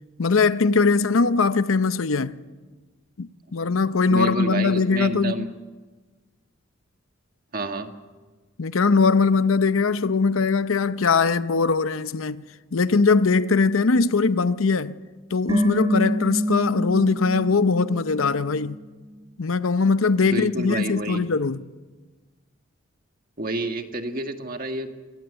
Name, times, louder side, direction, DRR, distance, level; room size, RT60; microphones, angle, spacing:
voice 1, 0.2-2.3 3.2-5.5 8.6-12.4 12.7-14.9 15.3-18.8 19.4-21.6, left 4 dB, 85° left, 0.7 m, -21 dB
voice 2, 4.1-5.5 7.5-7.9 20.2-21.3 23.4-24.9, right 2 dB, 45° right, 1.6 m, -29 dB
sound 1, 15.5-18.8 19.0-19.1, equal, 20° right, 4.7 m, -27 dB
24.0 x 16.5 x 8.2 m
head